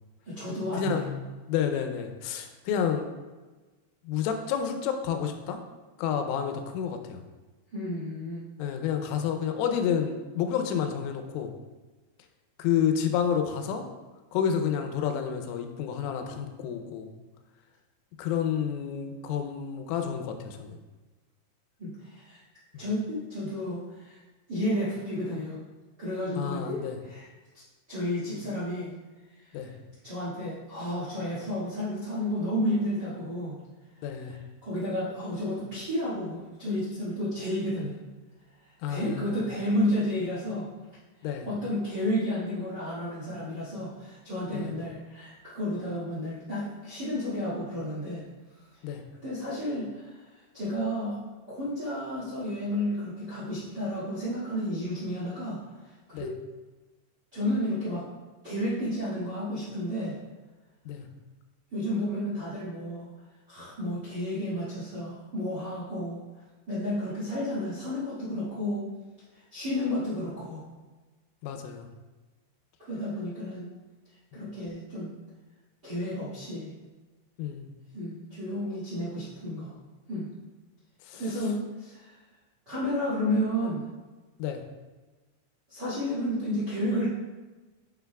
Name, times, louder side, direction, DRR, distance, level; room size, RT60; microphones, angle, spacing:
voice 1, 0.2-1.1 7.7-8.4 21.8-22.4 22.8-24.2 24.5-25.6 26.0-27.3 27.9-28.9 29.4-29.7 30.0-33.6 34.1-38.0 38.9-40.7 41.4-48.2 49.2-50.2 50.5-51.2 51.5-56.3 57.3-58.0 58.4-60.1 61.7-63.1 63.5-66.2 66.7-68.8 69.5-70.6 72.8-73.7 74.3-75.1 75.8-76.7 77.9-79.7 80.1-80.3 81.2-82.2 82.6-83.8 85.7-87.0, left 1 dB, 45° right, -11 dB, 1.3 m, -31 dB
voice 2, 1.5-3.1 4.0-5.6 6.0-7.2 8.6-11.5 12.6-13.8 14.3-17.1 18.2-20.8 22.7-22.8 26.4-27.0 29.5-29.7 34.0-34.3 38.8-39.4 41.2-41.5 44.5-44.7 48.8-49.0 56.1-56.3 60.9-61.0 71.4-71.9 74.3-74.4 77.4-77.7 81.1-81.2 84.4-84.6, left 8 dB, 90° left, 6 dB, 3.2 m, -30 dB
9.0 x 6.5 x 2.3 m, 1.2 s
omnidirectional pair, 5.6 m